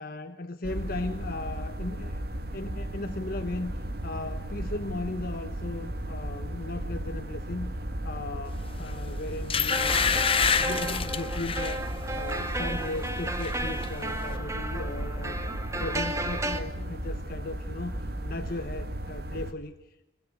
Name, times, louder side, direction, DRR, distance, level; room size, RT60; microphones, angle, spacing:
voice 1, 0.0-2.2 2.5-7.8 8.0-10.3 10.6-15.4 15.7-20.0, left 2 dB, 55° left, 7 dB, 1.2 m, -37 dB
sound 1, 0.6-19.5, right 1 dB, 60° right, 1.8 m, -35 dB
sound 2, 8.8-9.0 9.5-11.8 12.3-12.5 12.8-13.6 13.8-13.9, left 7 dB, 30° left, 0.9 m, -27 dB
sound 3, 9.7-16.6, right 1 dB, 15° right, 1.9 m, -34 dB
23.5 x 22.5 x 8.0 m, 0.91 s
head